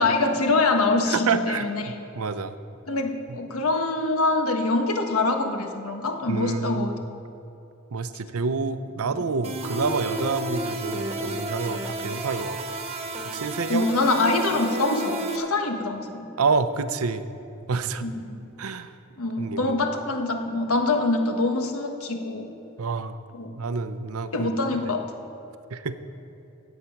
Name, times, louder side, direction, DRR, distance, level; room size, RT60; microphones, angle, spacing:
voice 1, 0.0-2.0 2.9-7.0 13.7-16.3 18.0-18.4 19.2-22.5 23.3-23.5 24.3-25.0, left 2 dB, 80° left, 4 dB, 1.4 m, -24 dB
voice 2, 1.1-2.6 6.3-7.0 7.9-12.6 13.2-13.9 16.4-17.2 17.7-18.1 18.6-18.9 19.4-19.8 22.8-23.2 23.6-24.5 25.7-25.9, right 4 dB, 80° right, 12 dB, 0.7 m, -28 dB
sound 1, 9.4-15.4, right 1 dB, 30° right, 1.2 m, -32 dB
16.0 x 8.4 x 5.8 m, 2.9 s
head